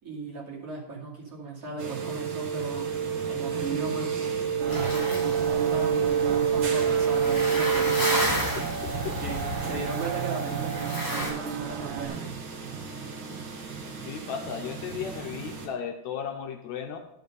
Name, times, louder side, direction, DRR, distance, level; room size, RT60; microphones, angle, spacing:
voice 1, 0.0-2.9 3.3-4.1 4.6-8.3 9.2-12.3, right 3 dB, 30° right, -5 dB, 2.6 m, -37 dB
sound 1, 1.8-15.7, right 7 dB, 50° right, 1.8 m, -29 dB
sound 2, 4.6-12.1, right 8 dB, 80° right, 2.0 m, -34 dB
sound 3, 4.7-11.3, equal, 35° left, 3.9 m, -33 dB
voice 2, 8.5-9.2 13.3-13.4 14.1-17.0, left 7 dB, 75° left, 4 dB, 1.8 m, -35 dB
10.5 x 5.4 x 5.3 m, 0.82 s
omnidirectional pair, 3.6 m